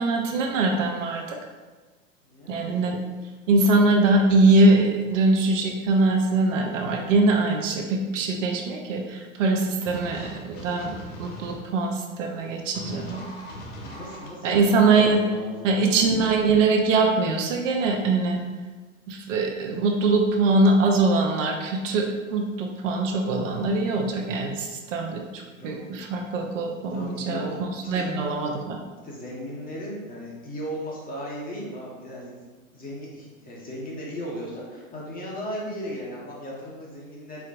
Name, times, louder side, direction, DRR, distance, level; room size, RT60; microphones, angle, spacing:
voice 1, 0.0-1.4 2.5-3.0 3.5-13.2 14.4-15.2 15.6-18.4 19.1-28.8, right 3 dB, 65° right, 2 dB, 0.8 m, -22 dB
voice 2, 2.2-2.8 13.8-15.9 25.5-26.0 26.9-28.1 29.0-32.5 32.7-37.5, equal, 20° left, -4 dB, 1.2 m, -36 dB
sound 1, 9.8-11.6 12.7-14.3, left 1 dB, 65° left, 1.2 m, -40 dB
4.5 x 4.2 x 2.5 m, 1.3 s
hypercardioid pair, 110°, 40 cm